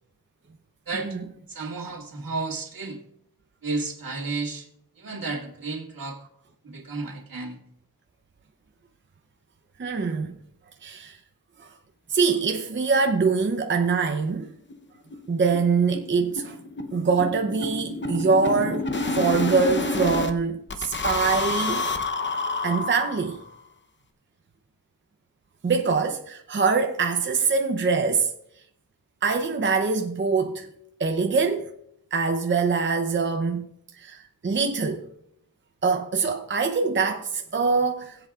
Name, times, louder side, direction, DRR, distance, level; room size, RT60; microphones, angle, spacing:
voice 1, 0.9-1.2 1.5-3.0 3.6-4.7 5.0-6.2 6.6-7.6, right 3 dB, 70° right, 2.0 m, -32 dB
voice 2, 9.8-10.3 10.8-11.2 11.6-11.7 12.1-14.5 15.3-16.6 16.9-18.9 19.1-21.9 22.6-23.4 25.6-28.3 29.2-30.7 31.0-31.7 32.1-33.6 34.0-35.1 35.8-38.2, right 4 dB, 35° right, 0.7 m, -24 dB
sound 1, 13.5-13.6 13.9-14.0 14.3-14.4 14.7-14.8 15.1-20.3 20.7-23.5, left 3 dB, 30° left, 0.8 m, -29 dB
20.5 x 8.0 x 2.4 m
wide cardioid pair, 140°, 35 cm